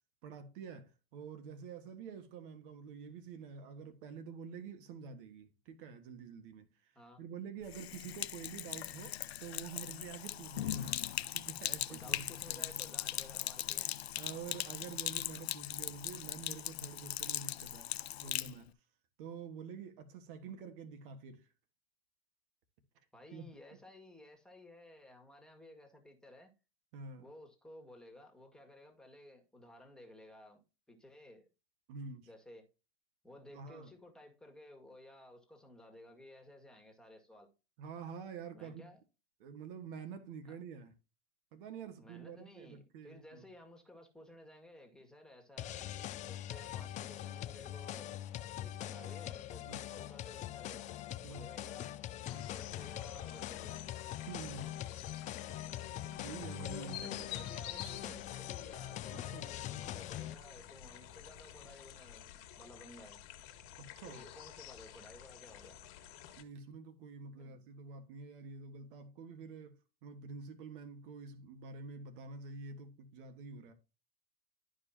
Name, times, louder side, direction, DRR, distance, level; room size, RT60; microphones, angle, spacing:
voice 1, 0.2-12.7 13.8-17.9 18.2-18.7 19.2-21.5 22.9-23.0 23.3-23.5 26.9-27.3 31.9-32.3 33.5-33.9 37.8-38.8 39.4-40.9 41.5-43.4 49.6-49.8 51.2-51.5 52.3-52.5 54.3-54.8 55.9-57.2 59.1-59.5 63.8-64.2 66.4-73.7, right 5 dB, 60° right, 1.5 m, -48 dB
Sink (filling or washing), 7.6-18.5, left 12 dB, 90° left, 0.6 m, -39 dB
voice 2, 11.9-13.9 23.1-26.5 27.2-30.6 30.9-31.5 32.3-32.7 33.2-37.5 38.5-39.0 40.5-40.6 42.0-48.1 48.6-50.9 51.3-51.9 52.3-53.8 56.6-63.2 64.1-65.8 67.4-67.6, left 1 dB, ahead, 2.0 m, -56 dB
sound 1, 45.6-60.3, left 13 dB, 25° left, 0.5 m, -43 dB
sound 2, 52.3-66.4, left 9 dB, 45° left, 1.6 m, -50 dB
12.0 x 5.2 x 2.8 m
hypercardioid pair, 115°, 31 cm